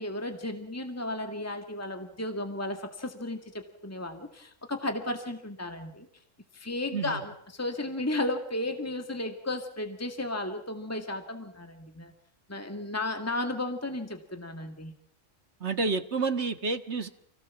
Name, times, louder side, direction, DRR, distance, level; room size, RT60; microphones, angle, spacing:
voice 1, 0.0-6.1 6.5-7.3 7.6-12.1 12.5-14.9, left 1 dB, 10° left, 5 dB, 2.1 m, -34 dB
voice 2, 15.6-17.1, right 4 dB, 60° right, 8 dB, 1.9 m, -29 dB
29.0 x 17.5 x 7.2 m, 0.68 s
omnidirectional pair, 1.3 m